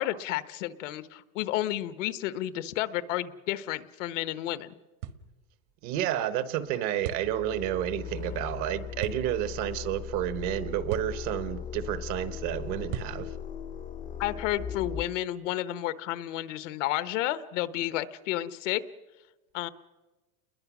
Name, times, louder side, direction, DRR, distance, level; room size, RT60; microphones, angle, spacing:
voice 1, 0.0-4.7 14.2-18.8 19.5-19.7, left 14 dB, 65° left, 13 dB, 1.1 m, -31 dB
sound 1, 5.0-5.3 7.0-7.3 9.0-9.2 10.9-11.2 12.9-13.2, right 10 dB, 55° right, 1.5 m, -36 dB
voice 2, 5.8-13.3, right 12 dB, 40° right, 13 dB, 1.0 m, -30 dB
sound 2, 7.0-15.0, left 8 dB, 20° left, 0.8 m, -39 dB
29.5 x 21.5 x 6.1 m, 1.2 s
supercardioid pair, 160°, 40 cm